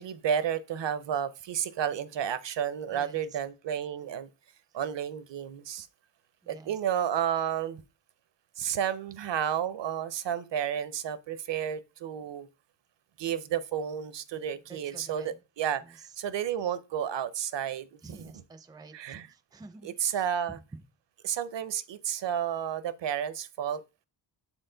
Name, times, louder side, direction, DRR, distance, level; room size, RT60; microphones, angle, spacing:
voice 1, 0.0-4.3 4.7-5.9 6.5-7.8 8.6-12.5 13.2-18.4 18.9-19.3 19.8-20.6 21.2-23.8, right 9 dB, 65° right, 0.6 m, -31 dB
voice 2, 2.9-3.2 6.4-6.8 14.7-15.3 15.8-16.1 18.0-20.3 21.2-21.3, right 3 dB, 10° right, 0.4 m, -50 dB
7.3 x 4.5 x 3.8 m
wide cardioid pair, 165°, 47 cm